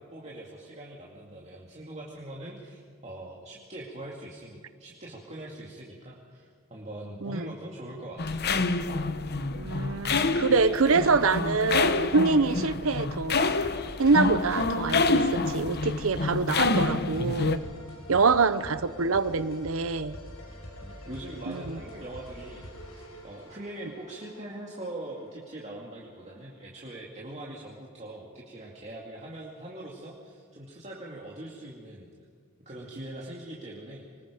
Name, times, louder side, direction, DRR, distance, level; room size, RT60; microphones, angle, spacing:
voice 1, 0.0-8.4 17.9-18.3 20.8-32.1 32.6-34.0, right 1 dB, 30° right, -3 dB, 2.3 m, -42 dB
sound 1, 8.2-17.6, left 3 dB, 50° left, 0.9 m, -27 dB
voice 2, 9.6-13.6 14.0-17.6 18.1-20.1 21.5-21.8, right 4 dB, 65° right, 13 dB, 0.8 m, -25 dB
sound 2, 13.3-26.7, equal, 80° left, 4.9 m, -46 dB
25.5 x 20.0 x 5.1 m, 2.1 s
head